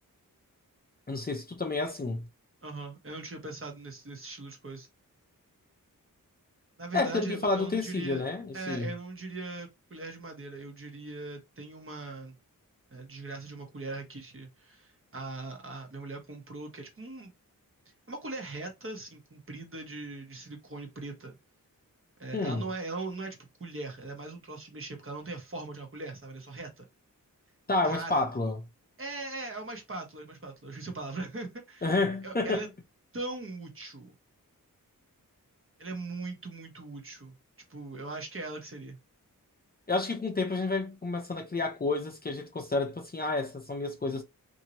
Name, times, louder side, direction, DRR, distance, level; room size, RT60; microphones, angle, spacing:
voice 1, 1.1-2.2 6.9-8.9 22.3-22.7 27.7-28.6 31.8-32.7 39.9-44.2, left 3 dB, 25° left, 0.6 m, -30 dB
voice 2, 2.6-4.9 6.8-8.2 8.5-12.4 12.9-17.3 18.1-21.4 22.2-26.8 27.8-28.3 29.0-32.0 32.2-32.7 33.1-34.1 35.8-37.3 37.7-39.0, right 3 dB, 40° right, 1.1 m, -40 dB
2.8 x 2.7 x 2.9 m
wide cardioid pair, 100°, 34 cm